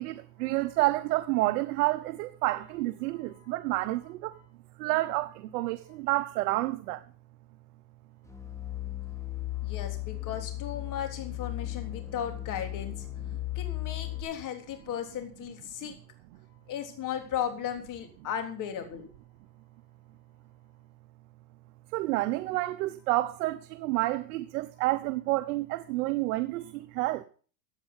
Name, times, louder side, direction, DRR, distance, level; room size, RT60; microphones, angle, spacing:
voice 1, 0.0-4.4 4.8-7.0 21.9-27.3, right 18 dB, 75° right, 1.0 m, -29 dB
sound 1, 8.3-14.2, left 17 dB, 5° left, 2.2 m, -36 dB
voice 2, 9.6-13.0 13.6-15.9 16.7-19.1, left 9 dB, 40° left, 3.6 m, -36 dB
15.5 x 9.0 x 5.5 m
supercardioid pair, 135°, 45 cm